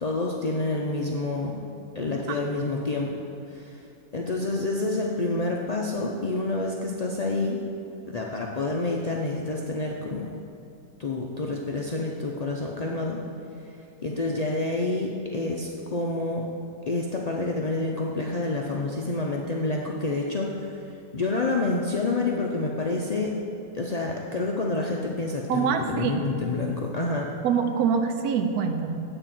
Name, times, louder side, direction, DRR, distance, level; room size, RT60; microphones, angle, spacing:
voice 1, 0.0-1.6 1.9-3.1 3.5-3.8 4.1-7.6 8.1-10.3 11.0-13.2 14.0-16.5 16.9-23.4 23.7-27.3, left 2 dB, 70° left, -1 dB, 0.3 m, -28 dB
voice 2, 25.5-26.3 27.4-29.0, right 6 dB, 80° right, 6 dB, 1.2 m, -25 dB
9.0 x 4.4 x 7.4 m, 2.7 s
omnidirectional pair, 1.6 m